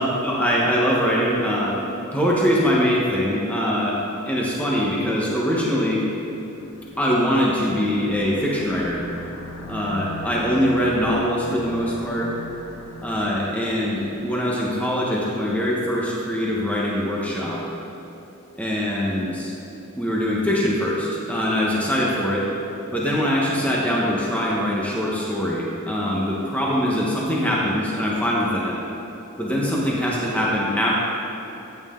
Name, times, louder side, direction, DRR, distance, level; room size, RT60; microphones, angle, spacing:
voice 1, 0.0-1.8 2.1-4.0 4.3-6.0 7.0-9.0 9.7-12.3 13.0-17.6 18.6-19.5 20.0-22.5 22.9-28.8 29.4-30.9, equal, 5° left, -4 dB, 1.2 m, -23 dB
sound 1, 6.2-14.7, left 2 dB, 70° left, 1.2 m, -40 dB
14.5 x 9.2 x 3.8 m, 2.9 s
head